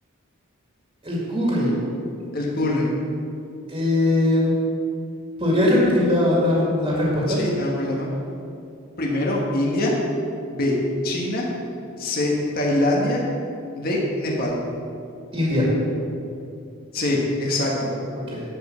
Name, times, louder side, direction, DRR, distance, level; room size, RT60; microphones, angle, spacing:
voice 1, 1.0-1.7 3.7-4.6 5.4-7.4 15.3-15.7 18.3-18.4, left 1 dB, 25° right, -5 dB, 2.2 m, -20 dB
voice 2, 2.3-2.9 7.3-8.1 9.0-9.9 10.5-10.8 11.0-11.5 12.0-13.2 13.7-14.6 16.9-17.9, left 1 dB, 45° left, -2 dB, 1.6 m, -23 dB
11.5 x 5.3 x 7.0 m, 2.6 s
head